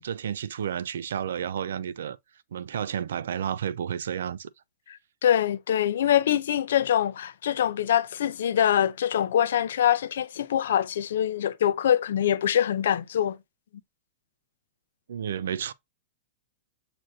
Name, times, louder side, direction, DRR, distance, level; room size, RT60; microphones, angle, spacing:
voice 1, 0.0-2.2 2.5-4.5 15.1-15.7, right 8 dB, 85° right, 0.3 m, -31 dB
voice 2, 5.2-13.4, left 10 dB, 75° left, 0.4 m, -24 dB
7.6 x 2.6 x 2.4 m
hypercardioid pair, 145°, 0 cm